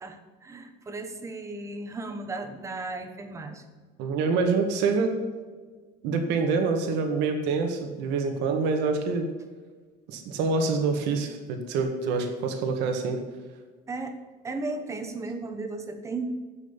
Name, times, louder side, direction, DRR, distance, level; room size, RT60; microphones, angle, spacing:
voice 1, 0.0-3.6 13.9-14.2 14.4-16.4, right 2 dB, 15° right, 7 dB, 1.1 m, -35 dB
voice 2, 4.0-5.2 6.0-9.3 10.1-13.2, right 4 dB, 80° right, 5 dB, 1.9 m, -26 dB
11.0 x 7.7 x 7.3 m, 1.4 s
cardioid pair, 180°, 17 cm